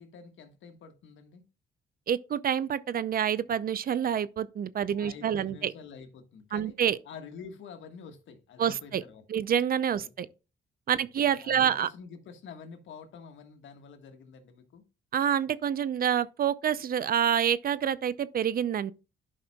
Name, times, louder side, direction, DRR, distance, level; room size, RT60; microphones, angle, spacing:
voice 1, 0.0-1.5 4.8-6.7 7.0-9.2 10.0-10.3 10.9-14.8, left 6 dB, 75° left, 1.4 m, -48 dB
voice 2, 2.1-5.7 6.5-7.0 8.6-9.0 9.3-10.3 10.9-11.9 15.1-18.9, right 9 dB, 50° right, 0.5 m, -27 dB
11.5 x 5.5 x 2.3 m
cardioid pair, 90°, 20 cm